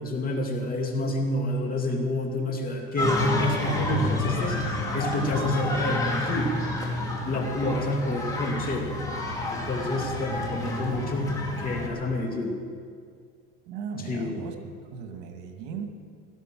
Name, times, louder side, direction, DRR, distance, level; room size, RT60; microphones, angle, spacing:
voice 1, 0.0-4.6 4.9-6.5 7.2-8.8 9.5-11.3 11.6-12.6 14.0-14.5, left 1 dB, 30° left, 1 dB, 2.4 m, -28 dB
sound 1, 3.0-11.9, left 2 dB, 10° left, 2.6 m, -29 dB
voice 2, 13.7-15.9, right 6 dB, 85° right, 5 dB, 1.9 m, -37 dB
18.0 x 13.0 x 6.1 m, 2.2 s
cardioid pair, 155°, 30 cm